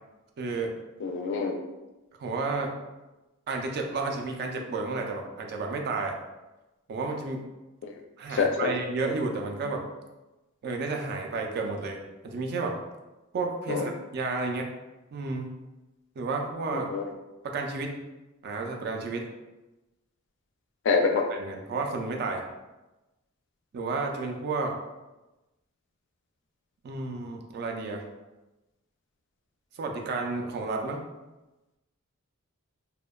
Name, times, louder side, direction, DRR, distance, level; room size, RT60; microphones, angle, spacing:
voice 1, 0.4-0.7 2.2-2.7 3.5-6.2 6.9-7.4 8.2-9.8 10.6-12.8 13.3-14.7 15.1-15.5 16.2-16.9 17.4-18.0 18.4-19.3 21.3-22.4 23.7-24.7 26.8-28.0 29.8-31.0, right 3 dB, 50° right, 2 dB, 0.3 m, -31 dB
voice 2, 1.0-1.5 7.8-7.9 8.4-8.7 13.7-13.9 16.7-17.0 20.9-21.2, left 5 dB, 60° left, 4 dB, 0.3 m, -26 dB
2.7 x 2.1 x 2.2 m, 1.1 s
head